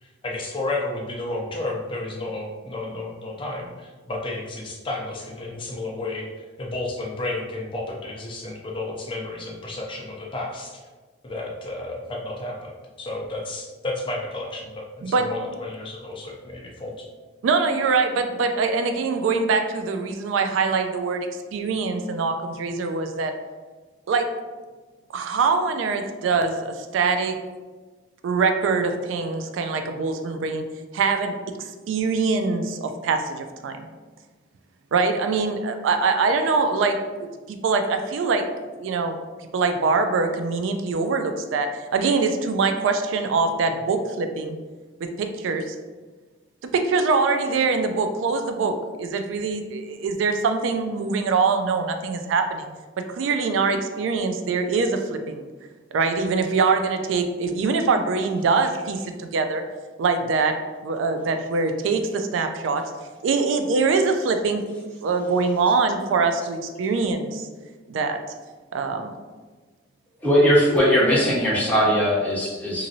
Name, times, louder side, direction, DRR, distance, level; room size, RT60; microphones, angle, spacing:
voice 1, 0.0-6.3 6.6-10.8 11.2-17.1 71.1-71.3, left 2 dB, 25° left, -2 dB, 0.4 m, -32 dB
voice 2, 17.4-23.3 24.1-24.4 25.1-27.4 28.2-30.7 30.9-33.9 34.9-38.5 38.8-39.2 39.5-44.6 45.2-45.8 46.7-52.7 53.1-55.4 55.9-59.6 60.0-60.6 60.8-62.8 63.2-64.6 65.0-67.5 67.9-68.2 68.7-69.1, right 4 dB, 90° right, 6 dB, 0.3 m, -23 dB
voice 3, 70.2-72.9, equal, 10° left, -7 dB, 0.8 m, -19 dB
2.9 x 2.5 x 2.6 m, 1.3 s
head